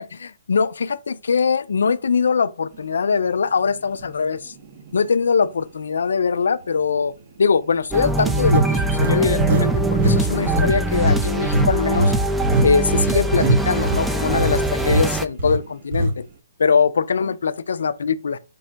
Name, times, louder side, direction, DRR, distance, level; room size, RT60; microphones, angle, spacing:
voice 1, 0.0-4.5 4.9-7.1 7.4-12.1 12.6-16.2 16.6-18.4, left 5 dB, 80° left, 0.3 m, -22 dB
sound 1, 4.0-4.1 4.7-4.9 8.5-9.7 10.0-10.2 10.5-14.6 14.9-15.1 15.4-15.6 15.9-16.1, right 1 dB, 45° right, 0.7 m, -21 dB
sound 2, 7.9-15.3, right 2 dB, 5° right, 0.3 m, -22 dB
5.2 x 2.1 x 3.7 m
hypercardioid pair, 145°, 0 cm